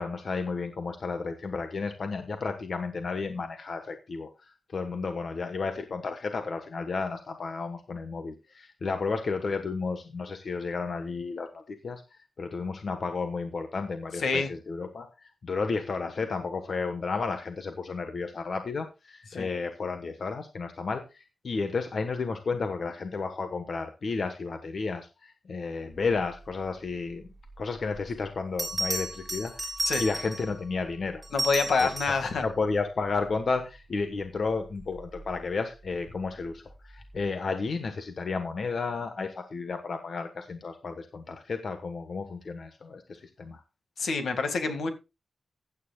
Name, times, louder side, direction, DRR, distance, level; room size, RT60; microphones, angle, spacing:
voice 1, 0.0-27.3 27.6-29.7 30.0-31.2 31.8-31.9 32.4-43.6, left 4 dB, 50° left, 7 dB, 1.3 m, -32 dB
Bell, 28.0-28.1 28.6-30.5 31.2-32.3 35.0-35.2, right 2 dB, 15° right, 6.1 m, -32 dB
voice 2, 31.3-32.4 44.0-44.9, left 4 dB, 75° left, 7 dB, 2.0 m, -27 dB
15.5 x 9.5 x 2.4 m, 0.27 s
wide cardioid pair, 150°, 0 cm